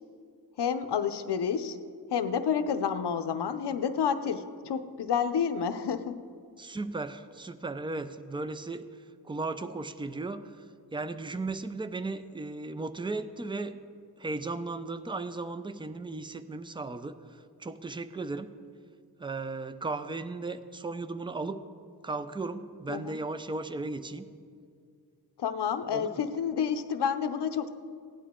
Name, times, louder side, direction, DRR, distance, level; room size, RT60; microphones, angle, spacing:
voice 1, 0.6-1.8 2.1-6.2 22.9-23.2 25.4-27.7, left 7 dB, 85° left, 10 dB, 0.7 m, -29 dB
voice 2, 6.6-8.9 9.2-10.6 10.9-13.8 14.2-18.5 19.2-21.6 22.0-24.3 25.9-26.2, right 3 dB, 15° right, 11 dB, 0.4 m, -36 dB
16.0 x 10.5 x 3.7 m, 2.2 s
wide cardioid pair, 115°, 39 cm